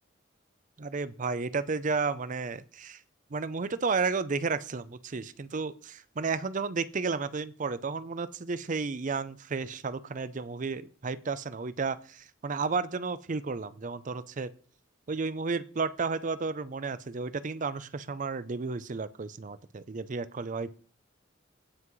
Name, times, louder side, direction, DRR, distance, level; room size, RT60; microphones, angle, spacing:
voice 1, 0.8-3.0 3.3-14.5 15.1-20.8, right 4 dB, 40° right, 15 dB, 0.5 m, -32 dB
17.0 x 5.9 x 3.1 m, 0.43 s
head